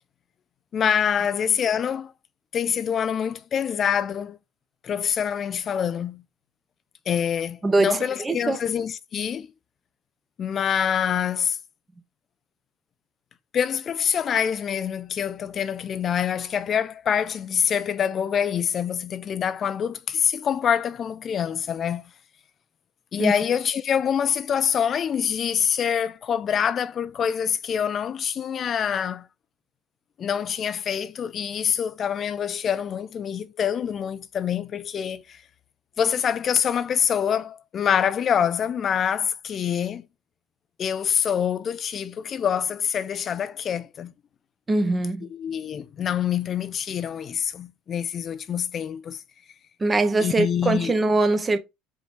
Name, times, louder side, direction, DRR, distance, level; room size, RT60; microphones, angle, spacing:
voice 1, 0.7-2.1 2.5-4.4 4.8-6.2 7.1-9.5 10.4-11.6 13.5-22.1 23.1-29.3 30.2-35.4 36.0-40.1 40.8-44.1 45.3-49.2 50.2-50.9, left 8 dB, 40° left, 0.3 m, -25 dB
voice 2, 7.6-8.0 8.2-8.6 23.2-23.3 44.7-45.3 49.8-51.6, right 2 dB, 20° right, 0.8 m, -22 dB
5.1 x 3.1 x 3.2 m
hypercardioid pair, 70°, 0 cm